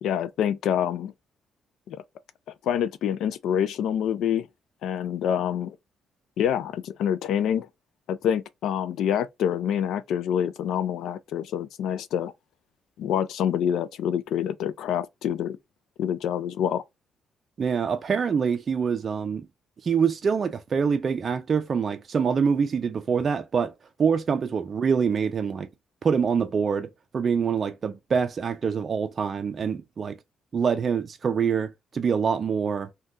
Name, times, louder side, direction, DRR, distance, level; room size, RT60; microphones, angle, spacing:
voice 1, 0.0-1.1 1.9-2.0 2.6-4.5 4.8-5.8 6.4-7.7 8.1-12.3 13.0-15.6 16.0-16.8, left 9 dB, 80° left, 0.3 m, -26 dB
voice 2, 17.6-19.5 19.8-25.7 26.0-30.2 30.5-32.9, right 6 dB, 45° right, 0.3 m, -25 dB
2.6 x 2.2 x 3.5 m
cardioid pair, 90°, 0 cm